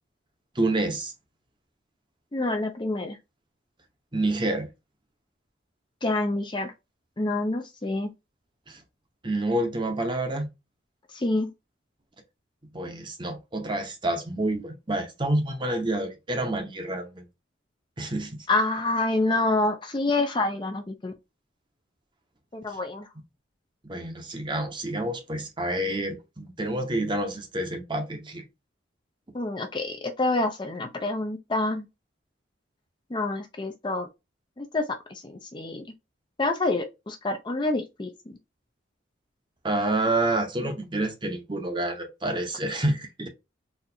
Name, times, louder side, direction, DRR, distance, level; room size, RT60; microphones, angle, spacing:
voice 1, 0.6-1.1 4.1-4.7 8.7-8.8 9.2-10.5 12.7-17.2 18.0-18.5 23.9-28.4 39.6-43.3, right 1 dB, 25° right, 0.8 m, -28 dB
voice 2, 2.3-3.2 6.0-6.7 7.2-8.1 11.1-11.5 18.5-21.1 22.5-23.1 29.3-31.9 33.1-34.1 34.6-35.8 36.4-38.1, left 2 dB, 25° left, 0.5 m, -27 dB
4.2 x 2.5 x 2.7 m
head